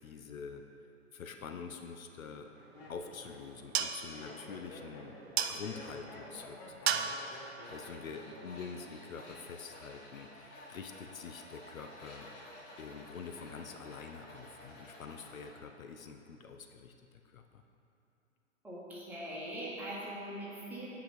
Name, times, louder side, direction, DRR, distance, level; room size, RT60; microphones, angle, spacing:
voice 1, 0.0-0.6 1.1-2.5 2.9-12.3 12.8-16.9 17.2-17.6, left 5 dB, 80° left, 5 dB, 0.8 m, -46 dB
Laughter, 1.3-1.7 2.4-9.0 9.3-9.8, left 2 dB, 45° left, 1.4 m, -51 dB
sound 1, 2.6-9.0, right 8 dB, 50° right, 0.5 m, -39 dB
Tools, 7.6-15.5, left 1 dB, 25° left, 1.2 m, -52 dB
voice 2, 18.6-20.9, right 1 dB, 5° right, -8 dB, 1.7 m, -41 dB
8.7 x 5.1 x 5.1 m, 2.8 s
hypercardioid pair, 130°, 40 cm